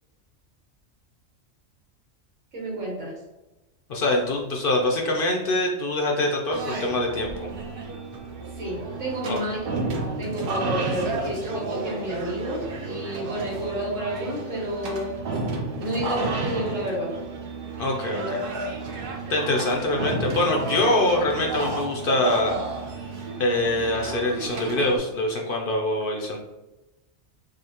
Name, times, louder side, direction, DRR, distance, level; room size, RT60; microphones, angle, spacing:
voice 1, 2.5-3.1 8.6-15.1 15.8-17.1 18.1-18.2, equal, 90° right, -4 dB, 1.7 m, -30 dB
voice 2, 3.9-7.5 9.3-9.4 17.8-18.4 19.3-22.6 23.4-26.4, left 2 dB, 60° left, 0 dB, 0.6 m, -24 dB
sound 1, 6.5-25.0, right 3 dB, 55° right, 0.7 m, -32 dB
5.0 x 2.1 x 2.8 m, 1.0 s
omnidirectional pair, 1.3 m